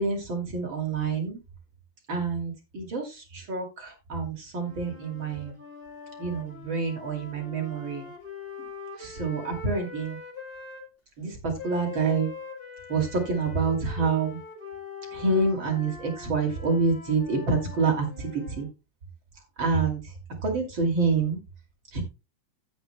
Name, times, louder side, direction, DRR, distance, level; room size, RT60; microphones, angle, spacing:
voice 1, 0.0-1.4 2.1-5.5 6.2-8.1 9.0-10.2 11.2-12.3 12.9-14.4 15.1-18.7 19.6-20.0 20.4-21.4 21.9-22.0, right 4 dB, 35° right, 1 dB, 2.5 m, -27 dB
sound 1, 4.6-10.9 11.6-18.7, left 4 dB, 45° left, 0.7 m, -43 dB
16.0 x 7.3 x 2.2 m, 0.27 s
omnidirectional pair, 4.8 m